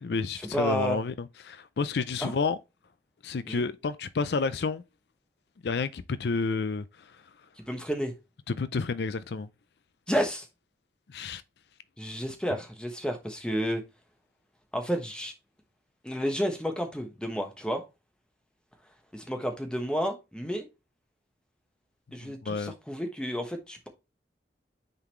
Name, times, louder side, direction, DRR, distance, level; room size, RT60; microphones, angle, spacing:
voice 1, 0.0-2.6 3.2-4.8 5.6-7.1 8.5-9.5 11.1-11.4 22.2-22.7, left 4 dB, 70° left, 0.4 m, -30 dB
voice 2, 0.5-1.0 2.2-2.3 3.5-3.6 7.7-8.1 10.1-10.5 12.0-13.8 14.7-15.3 16.0-17.8 19.1-20.7 22.1-23.9, equal, 5° left, 1.1 m, -31 dB
8.8 x 4.0 x 3.1 m
head